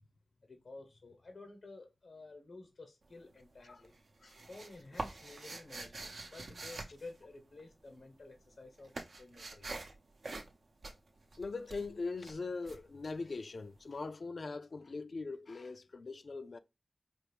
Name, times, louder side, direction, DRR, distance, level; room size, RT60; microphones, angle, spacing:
voice 1, 0.4-3.9 4.5-9.7, left 2 dB, 90° left, 0.7 m, -52 dB
sound 1, 3.0-3.5 3.8-7.9 8.2-13.7, right 2 dB, 80° right, 0.6 m, -46 dB
voice 2, 11.4-16.6, left 3 dB, 70° left, 0.3 m, -41 dB
4.5 x 2.5 x 3.3 m
wide cardioid pair, 55°, 0 cm